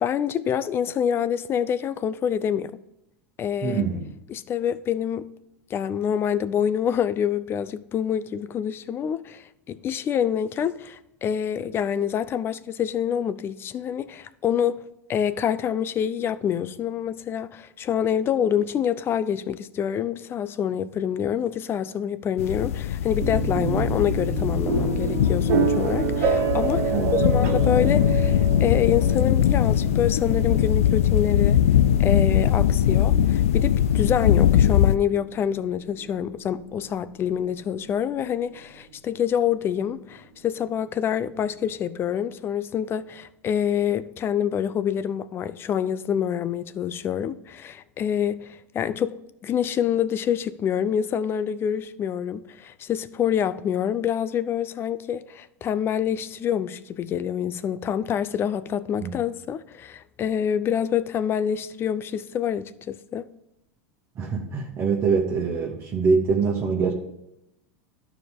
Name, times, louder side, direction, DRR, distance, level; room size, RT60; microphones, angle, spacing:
voice 1, 0.0-2.7 3.4-3.8 4.3-5.3 5.7-14.8 15.1-31.6 32.0-49.2 49.4-63.3, left 9 dB, 30° left, 0.5 m, -26 dB
voice 2, 3.6-4.0 26.9-27.4 59.0-59.1 64.1-66.9, right 5 dB, 35° right, 1.4 m, -24 dB
sound 1, 22.4-35.0, left 10 dB, 85° left, 0.4 m, -21 dB
sound 2, 23.2-37.0, right 6 dB, 55° right, 1.5 m, -29 dB
12.5 x 4.8 x 3.6 m
hypercardioid pair, 110°, 7 cm